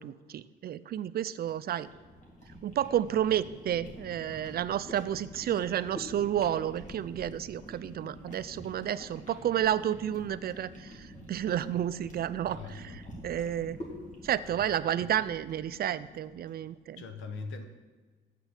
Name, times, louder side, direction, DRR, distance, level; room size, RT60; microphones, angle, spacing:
voice 1, 0.0-1.9 2.6-13.8 14.2-17.0, right 10 dB, 50° right, 15 dB, 0.4 m, -31 dB
sound 1, 1.4-16.7, equal, 40° left, 2.3 m, -47 dB
voice 2, 12.4-13.0 17.0-17.6, left 4 dB, 80° left, 8 dB, 1.0 m, -41 dB
7.7 x 6.1 x 6.5 m, 1.4 s
cardioid pair, 90°, 20 cm